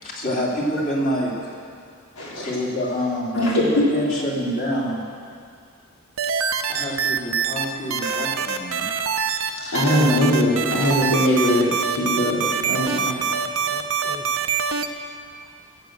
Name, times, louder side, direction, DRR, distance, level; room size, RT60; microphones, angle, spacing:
voice 1, 0.0-1.5 2.3-5.1 6.6-8.9, equal, 40° left, -4 dB, 2.7 m, -27 dB
voice 2, 2.2-2.5 3.3-4.2 9.6-13.1, left 1 dB, 85° left, -6 dB, 3.9 m, -21 dB
sound 1, 6.2-7.6 7.9-9.5 9.7-14.9, right 6 dB, 70° right, 0.7 m, -24 dB
voice 3, 12.9-14.8 15.2-15.5, right 1 dB, 15° right, -2 dB, 1.0 m, -45 dB
15.0 x 7.8 x 7.9 m, 2.4 s
head